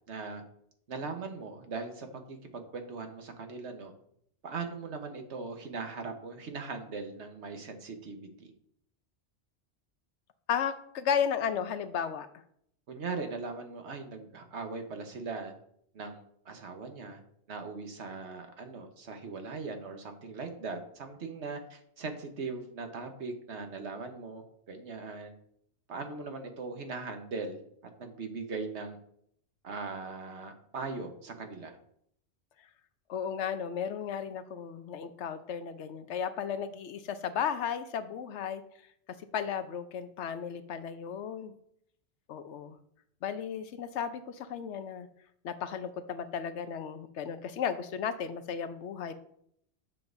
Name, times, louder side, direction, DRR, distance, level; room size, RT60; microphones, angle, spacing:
voice 1, 0.1-0.4 0.9-3.9 4.4-8.5 12.9-15.5 15.9-17.2 17.5-25.3 25.9-27.6 28.0-29.0 29.6-31.7, right 4 dB, 80° right, 5 dB, 1.4 m, -40 dB
voice 2, 10.5-12.3 33.1-38.6 39.3-41.5 42.3-42.8 43.2-45.1 45.4-49.1, left 7 dB, 90° left, 10 dB, 1.0 m, -34 dB
9.5 x 7.1 x 2.6 m, 0.69 s
omnidirectional pair, 1.1 m